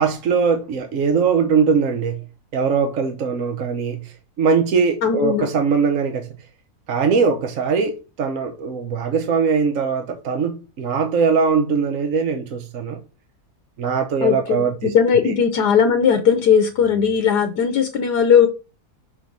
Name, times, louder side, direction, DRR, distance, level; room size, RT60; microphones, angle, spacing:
voice 1, 0.0-2.2 2.5-6.3 6.9-13.0 13.8-14.9 15.2-15.3, right 5 dB, 60° right, 1.2 m, -21 dB
voice 2, 5.0-5.5 14.2-18.5, left 7 dB, 90° left, 1.5 m, -17 dB
6.3 x 3.9 x 6.0 m
omnidirectional pair, 1.7 m